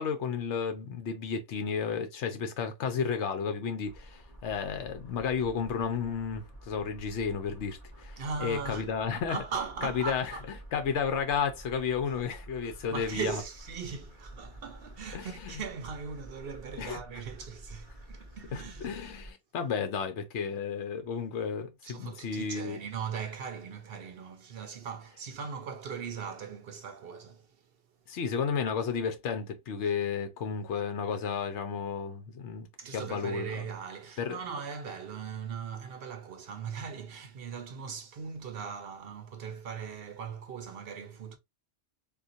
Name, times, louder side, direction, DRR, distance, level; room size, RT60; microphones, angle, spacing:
voice 1, 0.0-9.4 9.8-10.4 10.7-13.4 15.1-15.6 16.8-17.0 18.5-22.8 28.1-32.7 32.9-33.7 34.2-34.4, left 6 dB, 80° left, 1.0 m, -32 dB
sound 1, 3.8-19.3, right 1 dB, 35° left, 1.6 m, -49 dB
voice 2, 8.2-8.9 9.3-10.5 12.9-18.9 21.8-27.5 32.8-41.4, right 6 dB, 60° right, 0.8 m, -39 dB
3.8 x 2.5 x 2.6 m
omnidirectional pair, 1.2 m